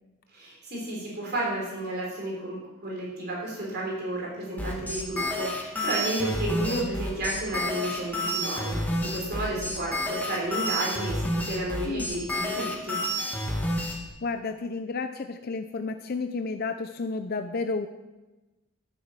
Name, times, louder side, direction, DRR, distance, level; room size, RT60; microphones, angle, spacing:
voice 1, 0.3-13.0, right 1 dB, 55° right, -3 dB, 3.7 m, -32 dB
sound 1, 4.6-13.9, equal, 10° left, 2.3 m, -29 dB
voice 2, 6.6-7.0 11.9-12.1 14.2-17.9, left 4 dB, 50° left, 8 dB, 0.6 m, -32 dB
13.0 x 7.2 x 7.4 m, 1.1 s
head